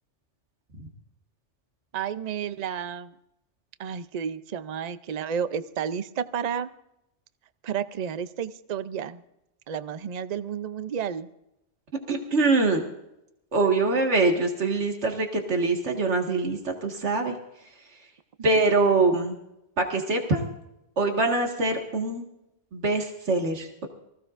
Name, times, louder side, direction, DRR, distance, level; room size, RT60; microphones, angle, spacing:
voice 1, 1.9-3.1 3.8-6.7 7.6-9.2 9.7-11.3, right 8 dB, 45° right, 12 dB, 0.6 m, -31 dB
voice 2, 12.1-12.8 13.5-17.3 18.4-19.4 19.8-20.4 21.0-22.2 22.7-23.9, right 3 dB, 75° right, 2 dB, 2.0 m, -24 dB
24.5 x 16.0 x 2.5 m, 0.86 s
omnidirectional pair, 1.2 m